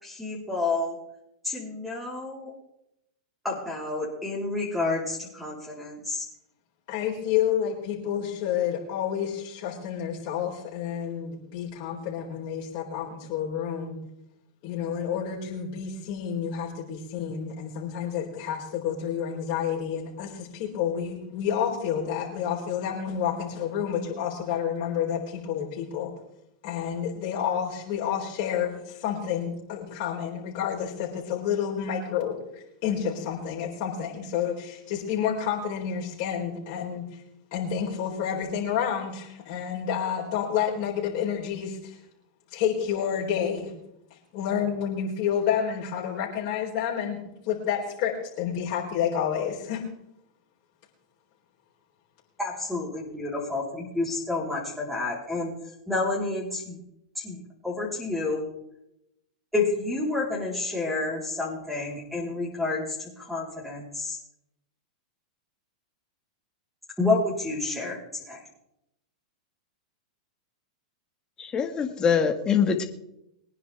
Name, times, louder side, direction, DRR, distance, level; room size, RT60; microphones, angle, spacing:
voice 1, 0.0-1.0 1.4-2.5 3.4-6.2 52.4-55.5 55.9-56.8 57.2-58.4 59.5-64.2 67.0-68.0 68.3-68.4, left 3 dB, ahead, -4 dB, 4.2 m, -29 dB
voice 2, 6.9-14.0 14.6-26.1 26.6-37.2 37.5-42.0 42.5-43.7 44.1-49.8, left 8 dB, 55° left, -4 dB, 4.0 m, -29 dB
voice 3, 71.4-72.8, left 6 dB, 20° left, 6 dB, 1.9 m, -24 dB
23.5 x 10.0 x 3.6 m, 0.81 s
hypercardioid pair, 115°, 4 cm